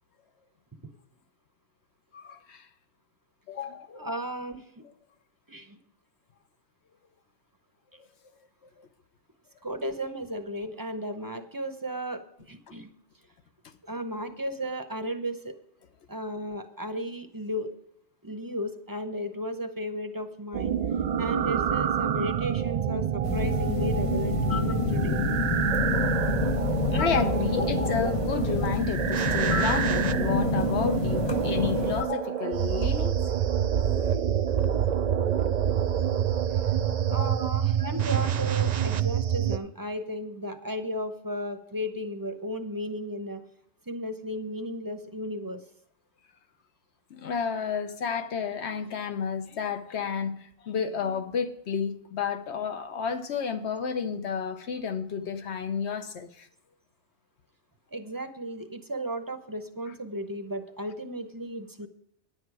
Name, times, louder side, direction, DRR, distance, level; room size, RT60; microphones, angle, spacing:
voice 1, 2.1-2.7 3.5-4.1 8.0-8.1 8.8-8.9 26.9-33.1 34.0-34.2 36.7-37.3 47.1-56.5, left 6 dB, 70° left, 1.2 m, -31 dB
voice 2, 3.9-4.8 5.5-5.8 9.6-12.9 13.8-15.6 16.1-17.7 18.2-20.8 21.2-25.2 37.1-43.4 43.9-45.6 57.9-61.9, equal, 20° right, 0.7 m, -34 dB
sound 1, 20.5-39.6, right 9 dB, 55° right, 0.5 m, -27 dB
sound 2, 23.2-32.0, left 6 dB, 40° left, 0.5 m, -28 dB
10.5 x 8.5 x 4.8 m
omnidirectional pair, 1.2 m